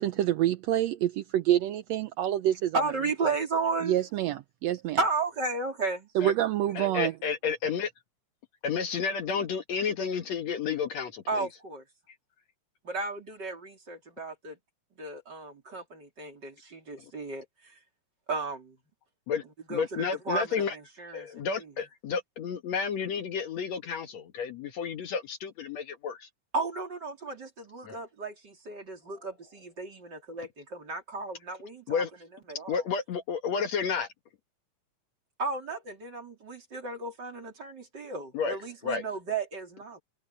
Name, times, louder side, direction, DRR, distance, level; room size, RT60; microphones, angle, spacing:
voice 1, 0.0-2.8 3.9-5.0 6.1-7.1, right 12 dB, 85° right, 1.5 m, -27 dB
voice 2, 2.7-4.0 5.0-6.1 11.3-11.8 12.8-14.6 15.0-17.7 18.3-18.8 19.7-21.7 26.5-32.0 32.5-32.8 35.4-40.0, right 3 dB, 30° right, 3.8 m, -34 dB
voice 3, 6.8-7.9 8.6-11.5 19.3-19.4 19.7-20.8 21.1-26.3 27.8-28.0 31.9-32.1 32.7-34.1 38.3-38.6 38.8-39.0, left 6 dB, 60° left, 2.3 m, -31 dB
omnidirectional pair, 3.8 m